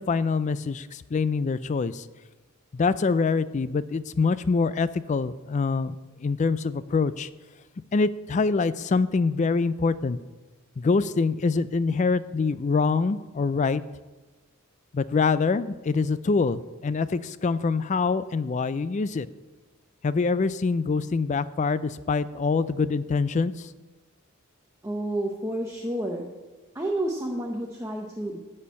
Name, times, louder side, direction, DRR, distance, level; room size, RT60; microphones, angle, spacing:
voice 1, 0.0-2.1 2.7-7.3 7.9-10.2 10.8-13.8 14.9-19.3 20.0-23.7, left 4 dB, 35° left, 15 dB, 0.3 m, -25 dB
voice 2, 24.8-26.3 26.7-28.4, right 1 dB, 15° right, 1 dB, 0.8 m, -30 dB
12.5 x 4.4 x 8.3 m, 1.2 s
head